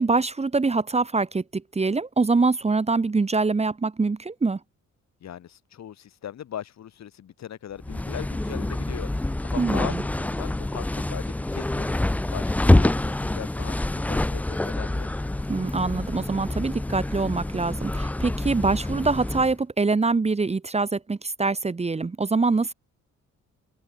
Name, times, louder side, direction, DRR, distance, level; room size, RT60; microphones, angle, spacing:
voice 1, 0.0-4.6 9.6-10.0 15.5-22.7, right 3 dB, 20° right, 1.2 m, -24 dB
voice 2, 5.2-15.1, left 10 dB, 60° left, 2.7 m, -39 dB
sound 1, 7.8-19.5, left 1 dB, 5° left, 0.4 m, -26 dB
cardioid pair, 90°, 30 cm